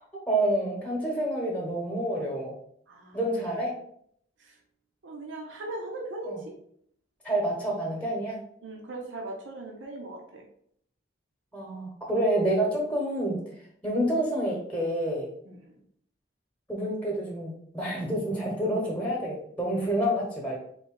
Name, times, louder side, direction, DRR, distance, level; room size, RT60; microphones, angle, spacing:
voice 1, 0.3-2.5 3.1-3.7 6.2-6.4 7.2-8.4 11.5-13.4 13.8-15.3 16.7-20.6, right 1 dB, 10° left, -2 dB, 1.0 m, -28 dB
voice 2, 2.9-3.2 3.4-3.5 4.4-4.6 5.0-6.6 8.6-10.5 15.5-15.8, right 2 dB, 85° right, 1 dB, 0.7 m, -39 dB
3.9 x 2.8 x 3.7 m, 0.66 s
head